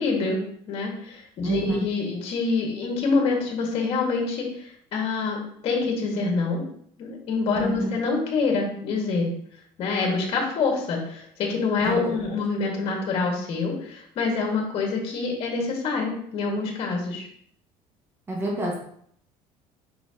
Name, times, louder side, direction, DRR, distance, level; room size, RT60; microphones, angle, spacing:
voice 1, 0.0-6.6 7.0-9.3 9.8-17.3, left 4 dB, 50° left, 0 dB, 1.9 m, -26 dB
voice 2, 1.4-1.9 7.6-7.9 11.8-12.1 18.3-18.8, right 2 dB, 20° right, -3 dB, 1.6 m, -27 dB
5.8 x 5.7 x 2.9 m, 0.65 s
cardioid pair, 145°, 13 cm